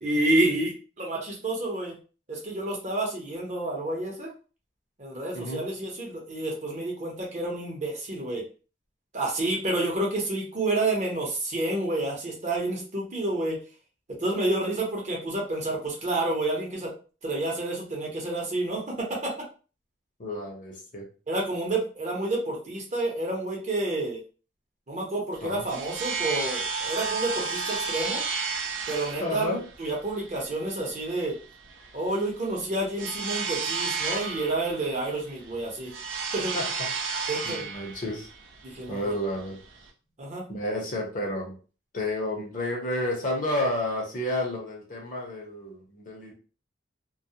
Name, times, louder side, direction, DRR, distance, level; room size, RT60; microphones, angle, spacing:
voice 1, 0.0-2.0 2.3-4.3 5.0-8.4 9.1-13.6 14.1-16.9 17.2-19.3 21.3-24.2 24.9-28.2 28.9-29.5 29.8-31.3 31.9-35.9 36.3-36.5 37.3-37.7 38.6-39.1 40.2-40.4, right 2 dB, 40° right, -2 dB, 0.8 m, -29 dB
voice 2, 5.3-5.7 20.2-21.1 25.4-25.7 29.2-29.6 36.5-36.9 37.4-38.3 38.9-39.6 40.5-41.5 41.9-46.3, left 1 dB, 45° left, -1 dB, 0.7 m, -31 dB
sound 1, 25.3-39.9, right 5 dB, 80° right, 0.5 m, -33 dB
2.3 x 2.0 x 2.8 m, 0.36 s
head